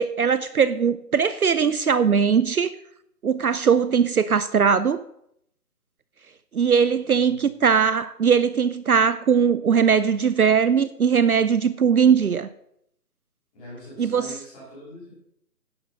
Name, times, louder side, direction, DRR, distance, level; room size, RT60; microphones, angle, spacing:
voice 1, 0.0-2.7 3.2-5.0 6.5-12.5 14.0-14.3, right 6 dB, 60° right, 0.6 m, -20 dB
voice 2, 7.0-7.7 13.5-15.1, equal, 5° left, 2.2 m, -43 dB
10.5 x 6.2 x 6.2 m
hypercardioid pair, 170°, 49 cm